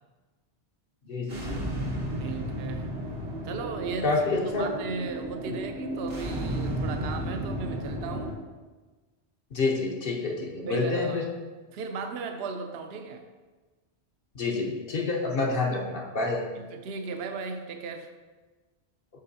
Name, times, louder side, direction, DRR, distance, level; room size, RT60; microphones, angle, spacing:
voice 1, 1.1-1.6 4.0-4.7 5.5-5.6 9.5-11.3 14.3-16.5, left 3 dB, 55° left, 0 dB, 1.0 m, -28 dB
sound 1, 1.3-8.3, right 1 dB, 90° right, 1.4 m, -33 dB
voice 2, 2.2-2.9 3.4-4.2 4.6-8.4 10.7-11.2 11.7-13.2 16.5-18.1, right 4 dB, 70° right, 6 dB, 0.8 m, -36 dB
7.7 x 5.8 x 2.7 m, 1.3 s
omnidirectional pair, 1.1 m